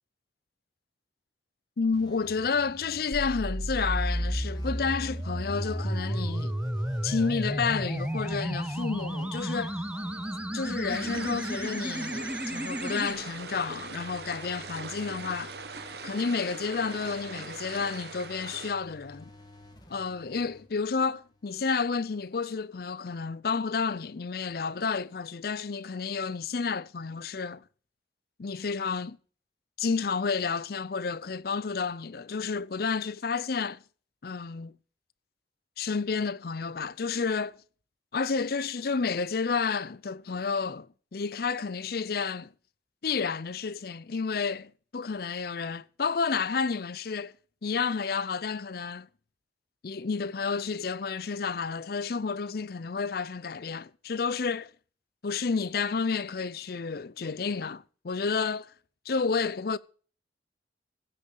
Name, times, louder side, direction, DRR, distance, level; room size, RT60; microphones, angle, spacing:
voice 1, 1.8-6.6 7.0-9.8 10.5-15.6 16.0-19.3 19.9-27.6 28.4-29.2 29.8-33.8 34.2-34.7 35.8-37.6 38.1-42.5 43.0-47.3 47.6-49.1 49.8-54.7 55.2-58.7 59.1-59.8, left 5 dB, 55° left, 0.5 m, -30 dB
sound 1, 1.9-21.5, left 1 dB, 25° left, 2.0 m, -52 dB
sound 2, 3.1-13.1, equal, 5° right, 0.9 m, -32 dB
sound 3, 10.9-18.7, right 4 dB, 65° right, 1.2 m, -41 dB
15.5 x 6.7 x 6.4 m
head